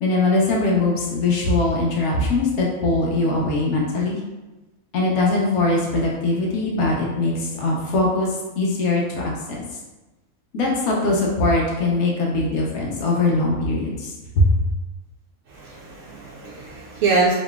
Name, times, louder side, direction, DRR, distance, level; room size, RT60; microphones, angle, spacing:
voice 1, 0.0-4.2 4.9-8.3 8.6-9.3 10.5-14.5, left 2 dB, 85° left, -2 dB, 1.3 m, -21 dB
voice 2, 15.5-17.3, right 4 dB, 70° right, -3 dB, 0.9 m, -24 dB
5.2 x 3.1 x 2.3 m, 1.1 s
omnidirectional pair, 1.5 m